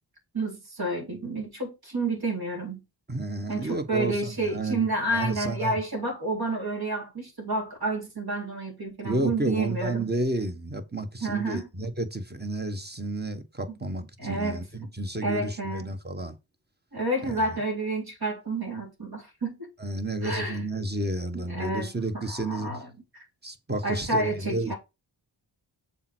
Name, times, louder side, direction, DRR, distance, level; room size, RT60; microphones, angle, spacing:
voice 1, 0.3-2.8 3.5-10.1 11.2-11.7 14.2-14.9 15.2-15.9 16.9-19.7 20.2-20.6 21.3-22.9 23.1-23.3 23.8-24.8, right 2 dB, 50° right, 4.0 m, -30 dB
voice 2, 3.1-4.9 5.1-5.8 9.0-16.3 17.2-17.3 19.8-22.7 23.4-24.7, right 2 dB, 20° right, 1.5 m, -31 dB
7.1 x 4.5 x 6.3 m
wide cardioid pair, 65°, 47 cm